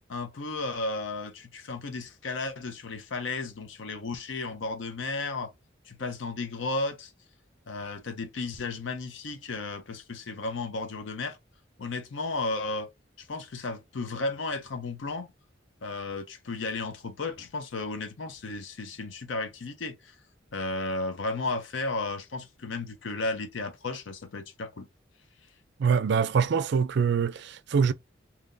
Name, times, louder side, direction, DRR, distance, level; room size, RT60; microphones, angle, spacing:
voice 1, 0.1-5.5 5.8-7.1 7.7-11.4 11.8-12.9 13.2-15.3 15.8-20.2 20.5-24.9, left 3 dB, 70° left, 0.6 m, -34 dB
voice 2, 25.8-27.9, right 6 dB, 60° right, 0.4 m, -24 dB
2.8 x 2.6 x 3.6 m
head